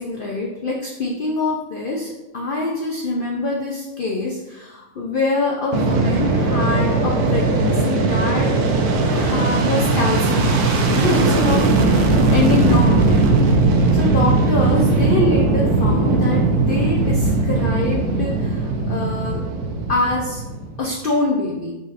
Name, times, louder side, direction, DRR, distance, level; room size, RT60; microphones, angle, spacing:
voice 1, 0.0-8.5 9.1-13.2 13.9-19.4 19.9-20.4 20.8-21.7, left 2 dB, 85° left, -2 dB, 0.4 m, -24 dB
Fixed-wing aircraft airplane, 5.7-20.9, right 3 dB, 85° right, 1.1 m, -18 dB
4.1 x 3.9 x 2.5 m, 1.0 s
omnidirectional pair, 1.6 m